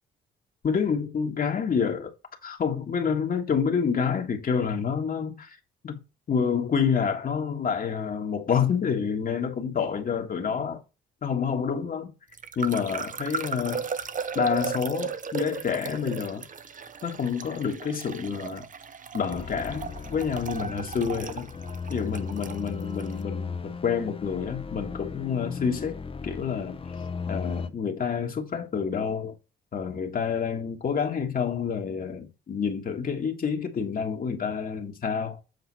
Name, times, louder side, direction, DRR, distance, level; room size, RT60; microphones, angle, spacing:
voice 1, 0.6-2.1 2.4-5.6 5.8-6.0 6.3-10.8 11.2-12.1 12.6-13.9 14.3-16.4 17.0-18.6 19.1-21.5 21.9-26.8 27.3-29.4 29.7-35.4, left 6 dB, 45° left, 1.5 m, -28 dB
sound 1, 12.3-23.1, right 6 dB, 40° right, 0.9 m, -36 dB
sound 2, 19.3-27.7, left 5 dB, 30° left, 0.8 m, -36 dB
8.0 x 4.0 x 4.1 m
cardioid pair, 90°, 20 cm